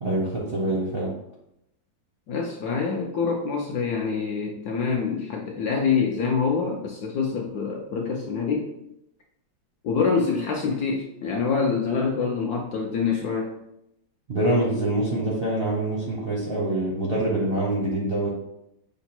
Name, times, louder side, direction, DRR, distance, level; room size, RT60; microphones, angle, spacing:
voice 1, 0.0-1.1 14.3-18.4, right 1 dB, 55° right, -4 dB, 0.6 m, -25 dB
voice 2, 2.3-8.7 9.8-13.5, left 5 dB, 70° left, 0 dB, 0.9 m, -26 dB
5.9 x 2.1 x 4.3 m, 0.83 s
omnidirectional pair, 2.1 m